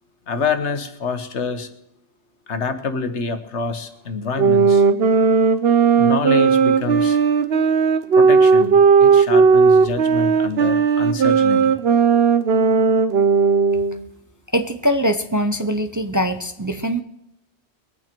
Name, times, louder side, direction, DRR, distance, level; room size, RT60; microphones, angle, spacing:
voice 1, 0.3-1.7 2.5-4.8 5.9-7.2 8.2-11.7, left 5 dB, 85° left, 8 dB, 1.5 m, -26 dB
sound 1, 4.4-14.0, right 5 dB, 65° right, 1.0 m, -16 dB
voice 2, 14.5-17.0, equal, 20° right, 7 dB, 0.6 m, -22 dB
22.0 x 9.0 x 4.5 m, 0.80 s
omnidirectional pair, 1.1 m